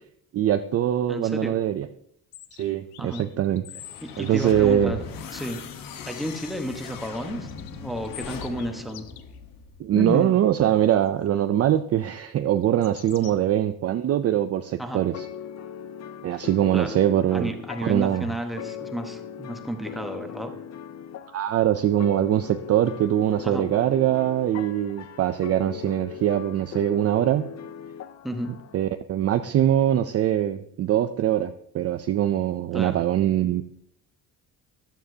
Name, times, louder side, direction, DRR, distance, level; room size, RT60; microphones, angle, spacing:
voice 1, 0.3-1.9 2.6-3.7 4.2-5.0 9.8-15.3 16.2-17.5 17.8-18.3 21.3-27.5 28.7-33.6, right 11 dB, 40° right, 9 dB, 0.4 m, -23 dB
voice 2, 1.1-1.6 3.0-3.2 4.0-5.0 5.3-5.6 6.1-9.1 9.9-10.3 14.8-15.0 16.3-16.4 16.7-17.0 17.3-20.5 23.4-23.7 28.2-28.5 32.7-33.0, equal, ahead, 4 dB, 1.1 m, -32 dB
sound 1, 2.3-4.5 7.3-9.4 10.9-11.1 12.6-13.3, left 12 dB, 75° left, 0.9 m, -45 dB
sound 2, 3.8-10.0, left 6 dB, 60° left, 1.1 m, -39 dB
sound 3, 15.1-28.9, left 8 dB, 45° left, 0.5 m, -39 dB
14.0 x 11.0 x 2.8 m, 0.70 s
cardioid pair, 150°, 38 cm